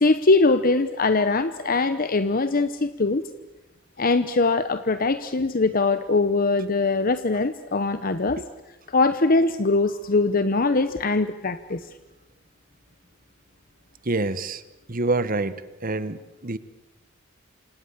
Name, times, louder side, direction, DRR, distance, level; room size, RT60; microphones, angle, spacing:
voice 1, 0.0-3.2 4.0-8.4 8.9-11.8, left 3 dB, 45° left, 12 dB, 0.9 m, -22 dB
voice 2, 14.0-14.6 14.9-15.5 15.8-16.6, right 2 dB, 45° right, 14 dB, 1.4 m, -26 dB
29.5 x 26.5 x 7.4 m, 1.0 s
head